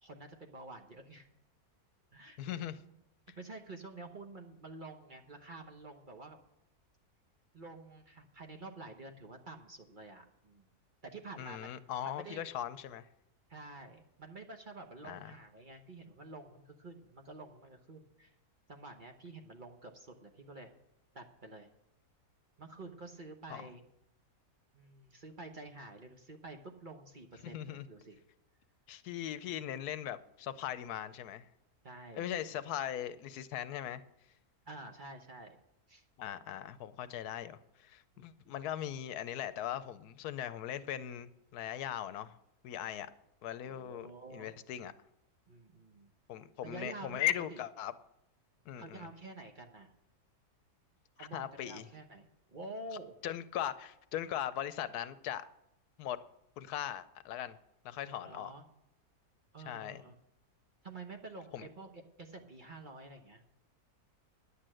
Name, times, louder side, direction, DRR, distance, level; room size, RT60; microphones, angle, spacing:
voice 1, 0.0-1.3 2.1-2.4 3.4-6.4 7.5-10.7 11.0-12.4 13.5-18.3 18.7-20.7 21.1-21.7 22.6-23.8 24.7-28.2 31.8-32.3 34.7-35.6 35.9-36.0 38.2-38.3 43.6-44.6 45.5-46.1 46.6-47.2 47.5-47.6 48.8-49.9 51.2-53.1 58.1-58.6 59.5-60.2 60.8-63.4, right 2 dB, 35° right, 1.0 m, -49 dB
voice 2, 2.4-2.8 11.4-13.1 15.0-15.3 23.5-23.7 27.4-27.9 28.9-31.5 32.1-34.0 36.2-42.4 42.6-43.1 43.4-44.9 46.3-47.9 48.7-49.1 51.2-51.8 53.2-55.4 56.0-56.2 56.6-57.6 57.8-58.5 59.7-60.0 61.5-61.7, left 11 dB, 85° left, 1.2 m, -39 dB
10.0 x 8.4 x 7.6 m
omnidirectional pair, 1.6 m